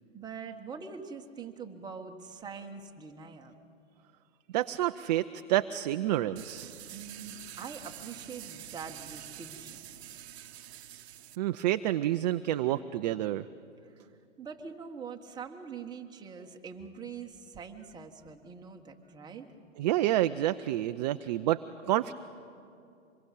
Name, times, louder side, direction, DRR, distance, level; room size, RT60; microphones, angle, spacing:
voice 1, 0.1-3.6 6.9-9.8 13.8-19.5, right 5 dB, 10° right, 2 dB, 1.4 m, -44 dB
voice 2, 4.5-6.7 11.4-13.4 19.8-22.1, right 14 dB, 35° right, 10 dB, 0.5 m, -29 dB
sound 1, 6.4-11.4, right 11 dB, 55° right, 1.0 m, -46 dB
25.5 x 22.0 x 8.4 m, 2.6 s
hypercardioid pair, 125°, 38 cm